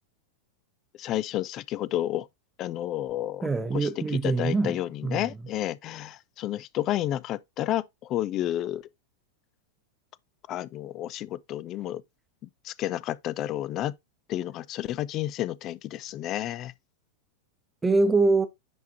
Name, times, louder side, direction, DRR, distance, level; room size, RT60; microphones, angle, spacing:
voice 1, 1.0-2.3 2.6-3.9 4.2-8.8 10.5-12.0 12.6-13.9 14.3-16.7, left 13 dB, 35° left, 0.4 m, -31 dB
voice 2, 3.4-5.3 17.8-18.5, right 3 dB, 10° right, 0.8 m, -24 dB
10.5 x 3.5 x 2.7 m
figure-of-eight pair, 90°, 0 cm